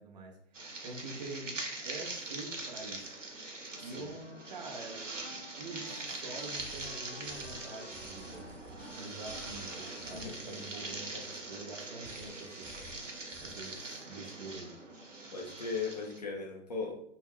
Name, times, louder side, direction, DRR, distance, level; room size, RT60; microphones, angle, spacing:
voice 1, 0.0-3.1 3.8-8.6 8.9-12.7 13.4-14.7, right 2 dB, 35° right, 0 dB, 0.5 m, -46 dB
sound 1, 0.5-16.2, right 2 dB, 85° right, 0.8 m, -43 dB
Wind instrument woodwind instrument, 3.7-11.3, left 2 dB, 85° left, 0.7 m, -55 dB
sound 2, 6.4-11.7 12.0-13.8, equal, 15° right, 0.9 m, -54 dB
voice 2, 10.1-10.6 15.3-17.0, left 4 dB, 35° left, 0 dB, 0.4 m, -38 dB
2.2 x 2.2 x 3.4 m, 0.75 s
figure-of-eight pair, 130°, 36 cm